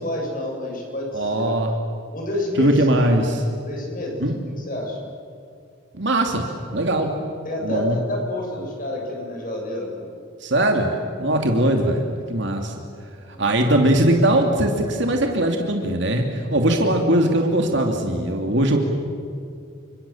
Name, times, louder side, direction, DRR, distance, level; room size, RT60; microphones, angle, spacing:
voice 1, 0.0-1.5 2.1-3.2 3.6-4.2 4.6-5.1 7.4-10.1 11.2-11.5 13.3-13.5, left 1 dB, 45° left, 0 dB, 7.4 m, -29 dB
voice 2, 1.1-1.7 2.6-3.4 4.2-4.4 5.9-6.5 6.7-7.1 7.6-8.0 10.4-10.9 11.2-12.7 13.4-18.8, right 1 dB, 60° right, 3 dB, 2.7 m, -20 dB
29.5 x 26.5 x 7.3 m, 2.4 s
head